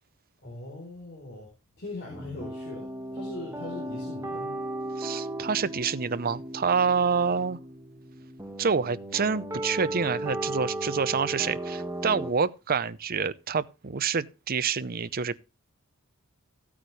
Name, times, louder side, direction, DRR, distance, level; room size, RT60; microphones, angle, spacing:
voice 1, 0.4-1.5 1.8-4.6, left 2 dB, 50° left, 3.8 m, -40 dB
sound 1, 2.1-12.3, right 1 dB, 15° right, 1.7 m, -36 dB
voice 2, 5.0-7.6 8.6-15.4, right 5 dB, 45° right, 0.6 m, -27 dB
15.0 x 8.7 x 3.2 m
head